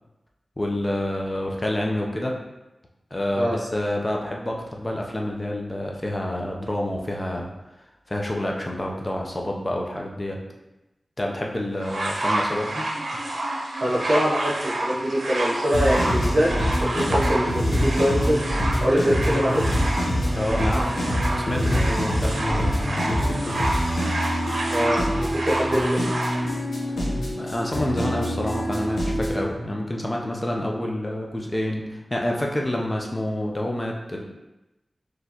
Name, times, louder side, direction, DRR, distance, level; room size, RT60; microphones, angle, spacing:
voice 1, 0.6-2.3 3.1-7.5 8.1-10.4 11.2-12.9 20.3-21.0 21.5-23.4 27.3-34.2, left 1 dB, 30° left, 0 dB, 0.7 m, -28 dB
sound 1, 11.8-26.4 27.3-27.4, right 1 dB, 75° right, 0.7 m, -29 dB
voice 2, 13.8-16.5 16.8-18.5 18.8-19.6 24.7-26.0, equal, 50° right, -7 dB, 1.0 m, -23 dB
sound 2, 15.7-29.4, equal, 85° left, 1.0 m, -25 dB
4.3 x 3.2 x 3.0 m, 0.99 s
cardioid pair, 45°, 0 cm